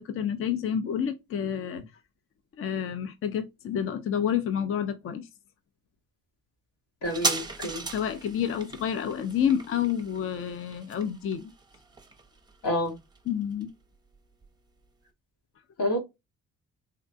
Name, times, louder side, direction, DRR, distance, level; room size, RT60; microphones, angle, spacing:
voice 1, 0.0-1.8 2.6-5.3 7.9-11.5 13.3-13.7, left 8 dB, 45° left, 0.5 m, -29 dB
voice 2, 7.0-7.8 12.6-12.9 15.8-16.0, left 1 dB, 90° left, 1.7 m, -28 dB
sound 1, 7.0-14.1 14.4-14.5, right 3 dB, 15° right, 0.7 m, -36 dB
3.8 x 2.2 x 2.5 m
cardioid pair, 90°, 30 cm